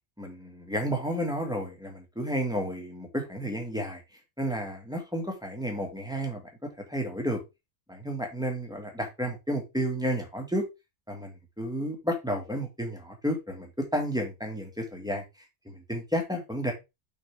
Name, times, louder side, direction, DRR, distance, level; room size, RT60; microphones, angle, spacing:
voice 1, 0.2-4.0 4.4-7.4 7.9-10.7 11.1-15.2 15.7-16.7, equal, 5° right, 1 dB, 1.7 m, -32 dB
6.4 x 5.3 x 3.5 m, 0.24 s
omnidirectional pair, 1.4 m